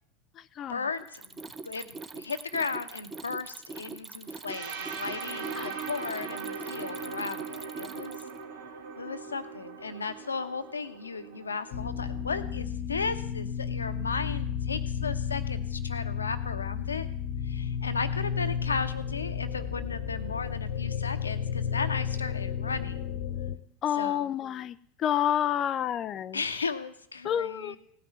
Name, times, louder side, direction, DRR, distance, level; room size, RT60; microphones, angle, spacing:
voice 1, 0.7-1.3 1.6-8.2 9.0-17.1 17.5-23.1 23.9-24.3 26.3-27.8, left 4 dB, 90° left, 11 dB, 1.0 m, -35 dB
Mechanisms, 1.0-8.4, right 3 dB, 20° right, 0.9 m, -42 dB
sound 1, 4.5-12.3, right 5 dB, 65° right, 1.9 m, -40 dB
sound 2, 11.7-23.6, left 8 dB, 65° left, 1.1 m, -32 dB
voice 2, 23.8-24.7 25.0-26.4 27.2-27.8, left 10 dB, 40° left, 13 dB, 0.5 m, -28 dB
17.0 x 6.0 x 9.3 m, 0.66 s
hypercardioid pair, 85°, 0 cm